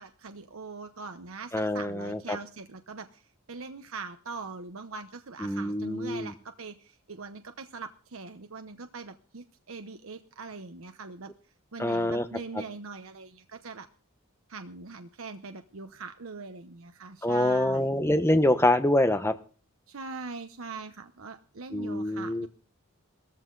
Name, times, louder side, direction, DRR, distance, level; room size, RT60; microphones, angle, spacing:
voice 1, 0.0-11.3 11.7-13.9 14.5-18.0 19.9-22.5, right 4 dB, 70° right, 8 dB, 0.9 m, -42 dB
voice 2, 1.5-2.4 5.4-6.3 11.8-12.2 17.2-19.3 21.7-22.5, left 1 dB, 10° left, 9 dB, 1.0 m, -25 dB
16.0 x 14.0 x 4.0 m, 0.39 s
head